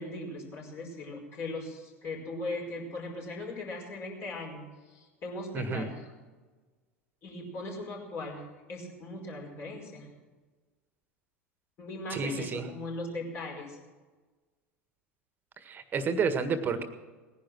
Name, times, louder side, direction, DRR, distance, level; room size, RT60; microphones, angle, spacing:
voice 1, 0.0-6.0 7.2-10.1 11.8-13.8, left 2 dB, 35° left, 0 dB, 5.0 m, -39 dB
voice 2, 5.5-5.8 12.1-12.7 15.6-16.8, right 5 dB, 25° right, 10 dB, 1.7 m, -30 dB
20.0 x 10.5 x 6.2 m, 1.3 s
figure-of-eight pair, 80°, 7 cm